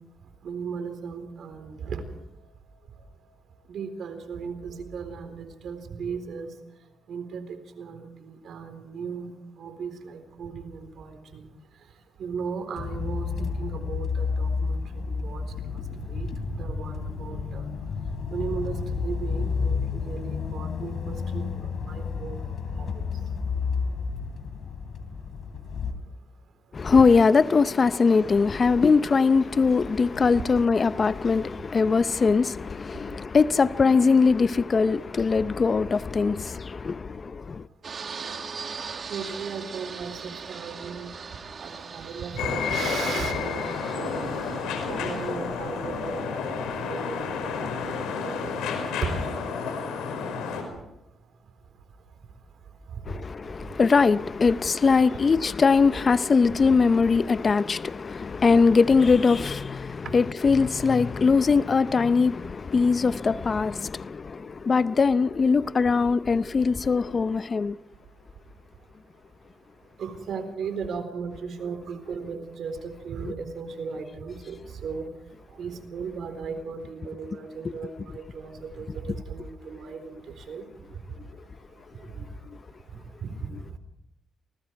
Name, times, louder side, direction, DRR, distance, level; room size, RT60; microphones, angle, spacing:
voice 1, 0.4-2.0 3.7-6.5 7.1-11.4 12.2-14.8 15.1-15.4 16.1-17.7 18.3-22.4 22.8-22.9 39.1-41.1 41.6-44.3 44.9-46.4 46.6-47.3 47.6-49.4 60.0-60.1 70.0-75.1 75.6-80.2 80.5-80.6 83.2-83.3, right 5 dB, 70° right, 4.0 m, -36 dB
sound 1, 12.7-25.9, left 5 dB, 60° left, 3.3 m, -31 dB
voice 2, 26.7-37.6 53.1-67.8, left 4 dB, 40° left, 0.7 m, -21 dB
Fixed-wing aircraft airplane, 37.8-45.4, right 5 dB, 50° right, 2.3 m, -40 dB
sound 2, 42.4-50.6, left 5 dB, 90° left, 5.1 m, -30 dB
28.0 x 20.0 x 4.7 m
cardioid pair, 75°, 0 cm